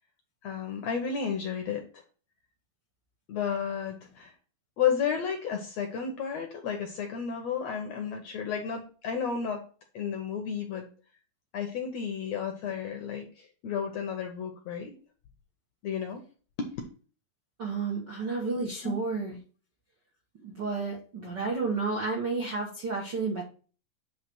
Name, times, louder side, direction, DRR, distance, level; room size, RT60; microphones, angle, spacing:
voice 1, 0.4-2.0 3.3-4.3 4.8-9.6 9.9-10.9 11.5-14.9 15.8-16.2 16.6-16.7 18.8-18.9, left 7 dB, 70° left, 4 dB, 1.7 m, -32 dB
voice 2, 17.6-19.4 20.4-23.4, right 4 dB, 55° right, -3 dB, 1.2 m, -31 dB
8.8 x 3.4 x 6.2 m, 0.39 s
omnidirectional pair, 4.0 m